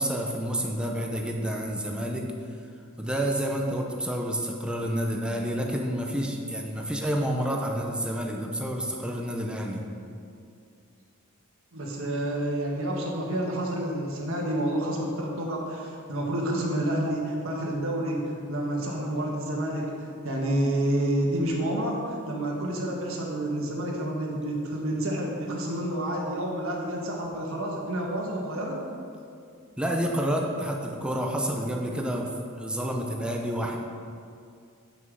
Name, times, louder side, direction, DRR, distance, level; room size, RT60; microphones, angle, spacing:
voice 1, 0.0-2.3 3.0-9.9 29.8-33.8, equal, 5° right, 0 dB, 0.6 m, -29 dB
voice 2, 11.7-28.8, right 1 dB, 65° right, -2 dB, 1.5 m, -29 dB
8.2 x 5.8 x 4.7 m, 2.4 s
head